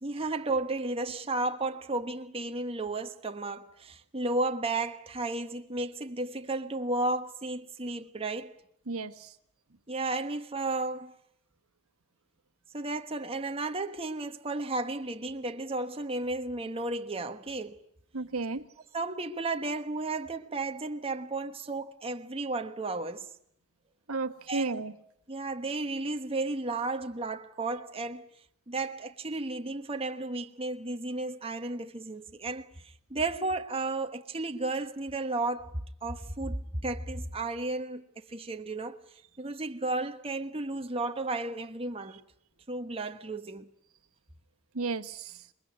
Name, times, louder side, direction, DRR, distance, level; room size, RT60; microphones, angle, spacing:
voice 1, 0.0-8.6 9.9-11.1 12.7-17.8 18.9-23.3 24.5-24.8 25.3-28.2 28.7-39.0 39.4-42.2 42.7-43.7, right 2 dB, 25° right, 1.2 m, -33 dB
voice 2, 8.9-9.3 18.1-18.6 24.1-24.9 44.7-45.3, right 3 dB, 70° right, 1.4 m, -33 dB
27.5 x 21.5 x 9.4 m
head